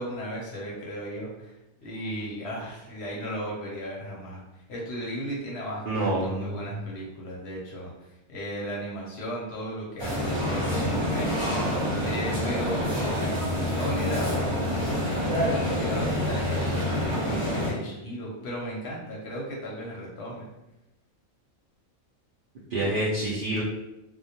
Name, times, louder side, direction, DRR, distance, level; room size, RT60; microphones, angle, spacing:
voice 1, 0.0-1.6 1.8-4.4 4.7-7.9 8.3-11.7 12.0-20.5, equal, 60° left, -4 dB, 0.8 m, -35 dB
voice 2, 5.9-6.6 22.7-23.6, right 1 dB, 65° right, -7 dB, 0.5 m, -27 dB
sound 1, 10.0-17.7, left 1 dB, 30° right, 0.7 m, -27 dB
2.2 x 2.2 x 2.7 m, 0.92 s
omnidirectional pair, 1.4 m